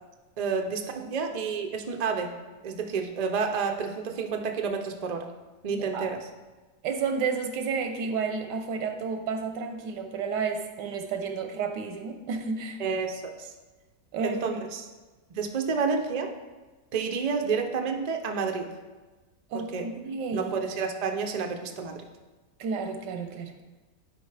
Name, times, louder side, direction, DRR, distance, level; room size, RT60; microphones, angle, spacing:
voice 1, 0.4-2.3 2.6-5.3 5.6-6.2 12.8-13.5 14.2-14.8 15.3-16.3 16.9-18.7 19.5-19.8 20.3-22.0, right 5 dB, 70° right, 4 dB, 0.4 m, -30 dB
voice 2, 5.7-6.1 6.8-12.8 14.1-14.6 19.5-20.5 22.6-23.5, right 5 dB, 90° right, 6 dB, 1.4 m, -31 dB
11.0 x 4.7 x 3.3 m, 1.2 s
omnidirectional pair, 1.8 m